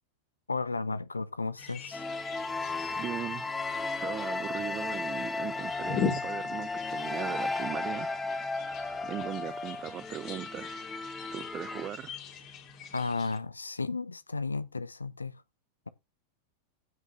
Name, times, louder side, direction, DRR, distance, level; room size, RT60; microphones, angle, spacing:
voice 1, 0.5-2.0 12.9-15.3, left 3 dB, 80° left, 0.8 m, -33 dB
sound 1, 1.6-13.4, left 6 dB, 35° left, 3.1 m, -41 dB
sound 2, 1.9-11.9, left 3 dB, 15° left, 1.7 m, -35 dB
voice 2, 2.9-3.4 4.0-8.1 9.0-10.9 11.3-12.2, right 11 dB, 30° right, 0.5 m, -39 dB
16.0 x 6.4 x 2.6 m
figure-of-eight pair, 90°, 0 cm